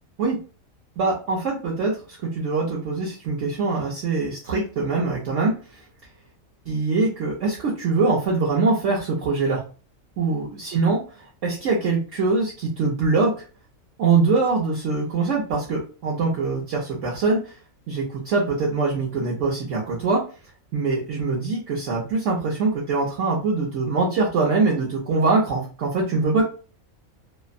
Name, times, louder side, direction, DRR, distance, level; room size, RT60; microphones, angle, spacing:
voice 1, 1.0-5.6 6.7-9.6 10.2-11.0 11.4-13.3 14.0-17.5 17.9-20.2 20.7-26.5, right 4 dB, 65° right, -4 dB, 1.0 m, -23 dB
2.7 x 2.0 x 2.5 m, 0.36 s
omnidirectional pair, 1.4 m